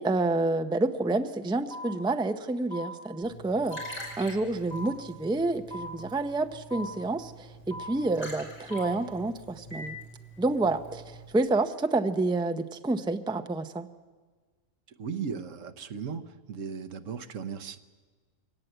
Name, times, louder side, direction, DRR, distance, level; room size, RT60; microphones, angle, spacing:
voice 1, 0.0-10.0 10.4-13.9, right 2 dB, 5° right, 8 dB, 0.5 m, -29 dB
sound 1, 1.7-1.9 2.7-2.9 3.7-3.9 4.7-4.9 5.7-5.9 6.7-6.9 7.7-7.9 8.7-8.9 9.7-9.9, left 1 dB, 60° left, 6.3 m, -39 dB
Liquid, 3.2-11.3, right 1 dB, 40° left, 5.8 m, -46 dB
voice 2, 15.0-16.2 16.5-17.8, right 6 dB, 80° right, 7 dB, 1.3 m, -36 dB
23.0 x 18.0 x 7.9 m, 1.4 s
omnidirectional pair, 1.3 m